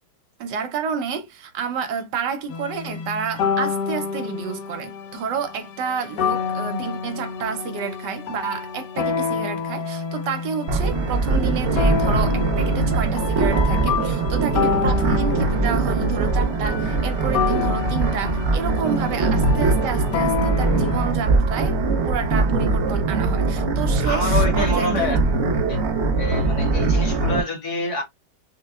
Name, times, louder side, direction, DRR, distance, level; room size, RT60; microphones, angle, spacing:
voice 1, 0.4-25.1, right 6 dB, 80° right, 1.4 m, -29 dB
sound 1, 2.5-21.1, left 6 dB, 85° left, 1.3 m, -28 dB
sound 2, 10.7-27.4, right 3 dB, 55° right, 0.8 m, -21 dB
voice 2, 24.0-25.2 25.7-25.8 26.2-28.0, left 2 dB, 50° left, 1.1 m, -26 dB
5.4 x 2.1 x 2.3 m
omnidirectional pair, 1.8 m